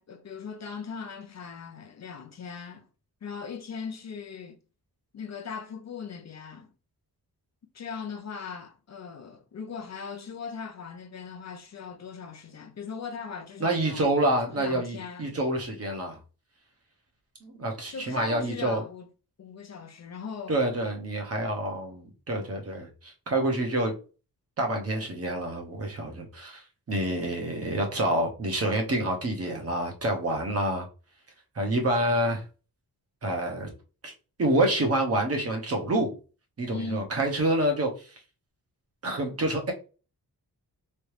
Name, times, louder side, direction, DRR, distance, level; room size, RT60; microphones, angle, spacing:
voice 1, 0.0-2.9 3.2-4.6 5.1-6.7 7.7-14.1 14.5-15.3 17.9-19.1 19.4-20.6 36.7-37.1, left 6 dB, 45° left, 0.5 m, -39 dB
voice 2, 13.6-16.2 17.4-18.8 20.5-23.9 24.6-26.6 26.9-30.9 31.5-32.4 33.2-33.7 34.0-34.1 34.4-36.1 36.6-38.1 39.0-39.7, right 1 dB, 40° right, 1.0 m, -27 dB
3.7 x 3.2 x 3.2 m
wide cardioid pair, 180°, 38 cm